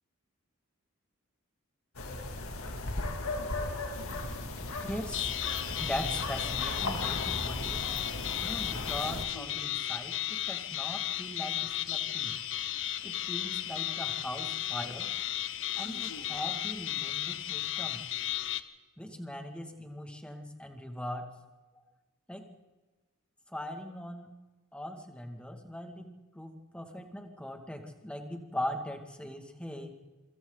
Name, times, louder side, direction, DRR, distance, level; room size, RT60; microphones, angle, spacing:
sound 1, 1.9-9.2, left 2 dB, 85° left, 2.8 m, -36 dB
voice 1, 4.8-5.3 5.8-7.8 8.4-12.3 13.0-15.1 15.8-18.0 19.0-21.2 22.3-22.5 23.5-24.3 24.7-26.1 26.3-30.0, left 1 dB, 5° left, 4 dB, 2.3 m, -40 dB
sound 2, 5.1-18.6, left 12 dB, 60° left, 1.0 m, -34 dB
27.5 x 24.5 x 4.1 m, 1.2 s
head